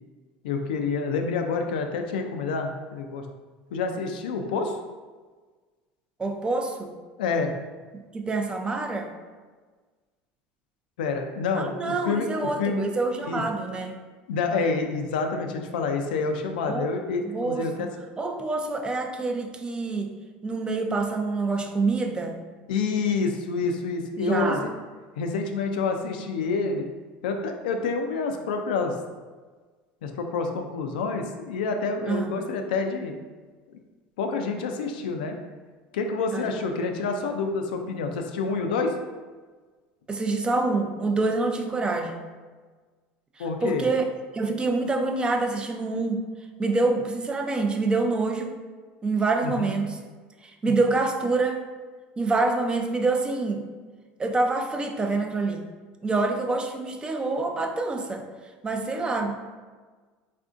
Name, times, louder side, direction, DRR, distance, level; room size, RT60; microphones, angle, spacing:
voice 1, 0.4-3.2 3.7-4.8 7.2-7.5 11.0-12.8 13.3-13.4 14.3-17.9 22.7-24.7 25.2-26.9 27.2-28.9 30.0-33.1 34.2-35.4 35.9-38.9 43.4-43.8 49.4-49.7 50.7-50.8, left 4 dB, 85° left, 4 dB, 0.3 m, -28 dB
voice 2, 6.2-6.9 7.9-9.1 11.5-14.0 16.7-16.9 17.2-17.9 18.2-20.2 20.4-22.4 24.2-24.7 32.1-32.3 36.3-36.6 40.1-42.2 43.4-44.0 44.3-46.3 46.6-48.5 49.0-50.0 50.4-51.6 52.2-53.7 54.2-55.6 56.0-58.3 58.6-59.4, right 3 dB, 20° right, 4 dB, 0.4 m, -26 dB
3.4 x 2.5 x 2.4 m, 1.4 s
supercardioid pair, 95°, 5 cm